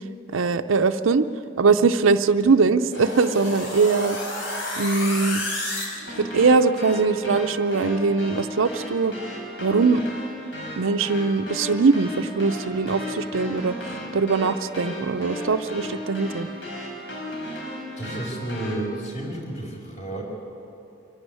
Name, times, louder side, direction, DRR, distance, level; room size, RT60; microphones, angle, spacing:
voice 1, 0.3-1.2 1.6-4.2 4.8-5.5 6.2-9.1 9.6-10.0 10.8-16.5, right 4 dB, 80° right, 7 dB, 0.6 m, -21 dB
sound 1, 2.9-18.8, left 1 dB, 70° left, 5.3 m, -33 dB
voice 2, 18.0-20.2, right 1 dB, 35° left, -1 dB, 4.7 m, -31 dB
24.0 x 12.0 x 9.7 m, 2.9 s
head